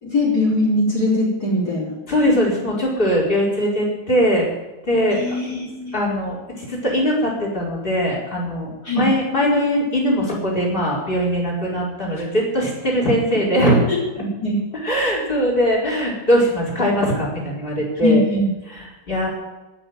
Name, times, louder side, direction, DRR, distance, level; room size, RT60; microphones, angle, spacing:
voice 1, 0.0-2.0 5.1-6.0 8.8-9.1 12.2-12.3 13.3-13.4 13.9-14.0 14.4-14.6 18.0-18.5, left 1 dB, 55° left, -4 dB, 4.4 m, -21 dB
voice 2, 2.1-4.5 4.8-5.2 5.9-13.9 14.8-18.2 19.1-19.3, equal, 25° left, -3 dB, 4.8 m, -20 dB
19.5 x 6.6 x 9.4 m, 1.1 s
omnidirectional pair, 2.1 m